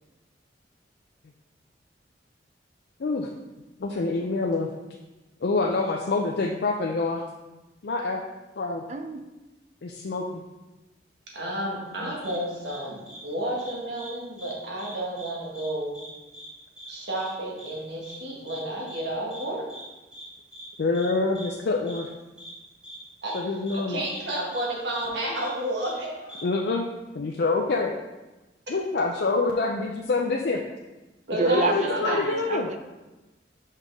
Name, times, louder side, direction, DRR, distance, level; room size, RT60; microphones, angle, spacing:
voice 1, 3.8-4.7 5.4-7.2 7.8-8.2 8.6-8.8 9.8-10.4 12.0-12.1 20.8-22.1 23.3-24.0 26.4-26.9 27.1-28.0 28.7-30.6 31.4-32.7, left 3 dB, 60° left, 0 dB, 0.4 m, -26 dB
voice 2, 11.3-16.0 16.9-19.6 23.2-23.4 23.7-26.4 31.3-32.4, right 1 dB, 70° right, -3 dB, 1.6 m, -31 dB
sound 1, 12.2-12.4 12.6-12.8 13.1-13.2 13.6-14.1 14.4-14.5 14.8-15.3 15.5-15.7 15.9-16.1 16.3-16.5 16.8-16.9 17.2-17.3 17.6-17.7 18.0-18.2 18.5-18.6 18.9-19.0 19.3-19.4 19.7-19.8 20.1-20.2 20.5-20.7 20.9-21.1 21.3-21.5 21.9-22.0 22.4-22.5 22.8-23.0 23.3-23.4 23.7-23.8 24.1-24.2 24.5-24.7 24.9-25.1 25.3-25.5 25.8-25.9 26.3-26.4, equal, 5° right, 1.6 m, -43 dB
voice 3, 31.3-32.8, right 2 dB, 40° right, 7 dB, 0.5 m, -27 dB
5.6 x 5.4 x 3.5 m, 1.1 s
head